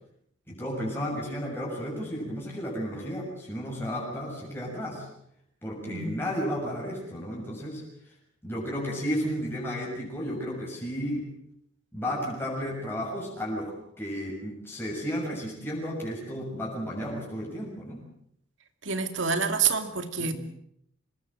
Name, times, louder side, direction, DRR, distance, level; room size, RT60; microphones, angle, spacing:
voice 1, 0.5-5.1 5.6-7.8 8.4-11.3 11.9-18.0 20.2-20.3, equal, 10° left, -3 dB, 6.9 m, -33 dB
voice 2, 5.8-6.2 18.8-20.3, right 5 dB, 70° right, 8 dB, 2.5 m, -27 dB
24.5 x 20.5 x 7.7 m, 0.72 s
head